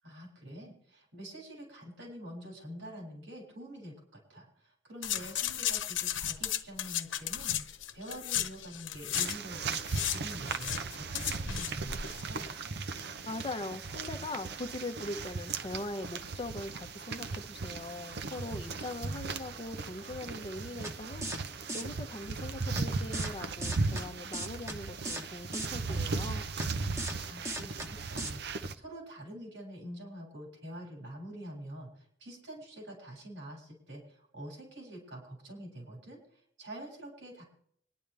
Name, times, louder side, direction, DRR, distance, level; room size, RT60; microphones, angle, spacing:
voice 1, 0.0-12.5 27.2-37.4, right 1 dB, 80° right, -1 dB, 7.0 m, -46 dB
sound 1, 5.0-9.4 9.6-12.2 12.5-12.6, left 10 dB, 80° left, 1.0 m, -34 dB
sound 2, 9.1-28.7, right 4 dB, 60° right, 0.8 m, -37 dB
voice 2, 13.3-21.3 21.7-26.4, left 2 dB, 30° left, 7 dB, 0.9 m, -41 dB
sound 3, 20.8-20.9 21.2-21.4 21.7-21.8 22.8-22.9 23.1-23.3 23.6-24.0 24.3-24.8 25.0-25.2 25.5-25.7 26.6-26.7 27.0-27.2 27.4-27.9 28.2-28.3, right 1 dB, 15° right, 1.2 m, -37 dB
26.0 x 11.0 x 3.4 m, 0.66 s
head